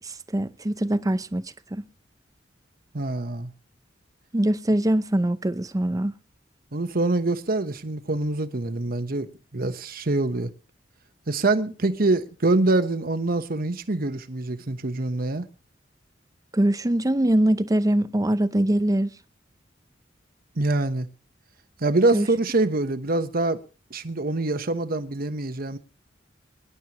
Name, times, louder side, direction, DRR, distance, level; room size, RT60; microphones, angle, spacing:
voice 1, 0.0-1.8 4.3-6.1 16.5-19.1 22.1-22.3, right 1 dB, 20° right, 0.6 m, -23 dB
voice 2, 2.9-3.5 6.7-10.5 11.3-15.5 20.6-21.1 21.8-23.6 23.9-25.8, right 2 dB, 50° right, 1.1 m, -25 dB
24.0 x 11.5 x 3.0 m
head